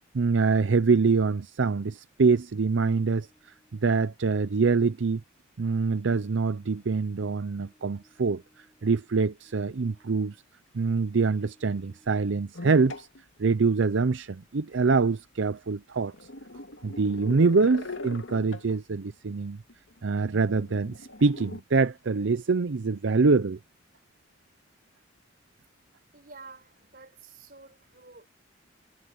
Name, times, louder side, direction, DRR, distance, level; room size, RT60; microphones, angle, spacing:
voice 1, 0.0-3.3 3.7-5.2 5.6-8.4 8.8-10.4 10.7-13.1 13.4-16.1 16.8-19.6 20.0-23.6, right 4 dB, 75° right, 0.6 m, -25 dB
sound 1, 2.8-4.1 4.5-10.6 10.8-12.4, equal, 5° left, 7.6 m, -65 dB
sound 2, 12.5-13.2 13.8-13.9 14.7-14.8 15.2-15.3 16.1-18.8 19.3-19.4 19.7-20.0 20.3-21.6, left 2 dB, 75° left, 2.0 m, -41 dB
voice 2, 26.1-28.3, right 4 dB, 50° right, 4.8 m, -50 dB
head